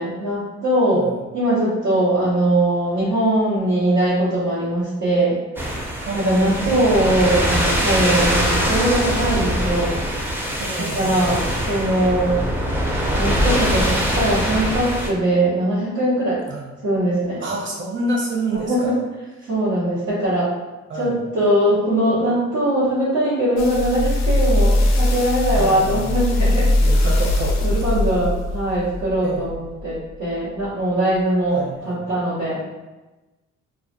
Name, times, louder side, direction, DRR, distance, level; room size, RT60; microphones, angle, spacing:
voice 1, 0.0-5.4 6.1-10.0 10.9-12.4 13.1-16.4 16.8-17.4 18.5-19.0 19.4-20.5 21.0-26.7 27.6-32.8, right 1 dB, 90° right, -13 dB, 1.0 m, -21 dB
sound 1, 5.6-15.1, equal, 5° right, 0.4 m, -22 dB
voice 2, 6.0-6.7 10.6-11.6 16.5-16.7 17.4-18.9 19.4-19.5 20.9-21.2 25.5-26.1 26.8-27.9 29.2-29.5 31.5-32.0, right 2 dB, 40° right, -2 dB, 0.7 m, -28 dB
sound 2, 23.6-30.0 30.6-30.7, left 1 dB, 60° left, 0.5 m, -20 dB
2.3 x 2.1 x 2.6 m, 1.1 s
cardioid pair, 90°, 30 cm